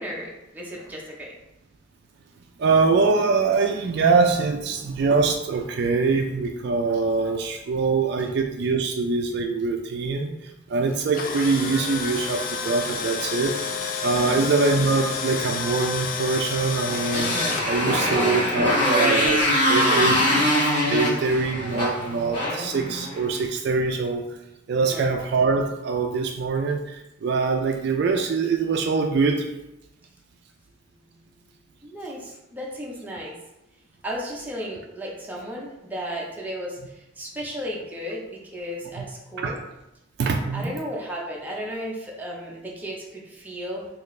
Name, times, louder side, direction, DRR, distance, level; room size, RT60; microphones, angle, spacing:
voice 1, 0.0-1.3 14.2-14.4 18.0-18.8 24.8-25.1 31.8-33.3 34.0-39.6 40.5-43.9, equal, 10° right, -3 dB, 0.6 m, -34 dB
voice 2, 2.6-13.6 14.0-17.4 17.6-24.2 24.7-29.5 39.0-39.1 39.4-39.6 40.2-40.7, right 4 dB, 55° right, 3 dB, 0.3 m, -23 dB
Tools, 10.9-17.6, left 5 dB, 45° left, 0.3 m, -30 dB
Motorcycle, 16.8-23.3, left 1 dB, 25° left, 1.1 m, -23 dB
4.1 x 2.4 x 3.1 m, 0.91 s
head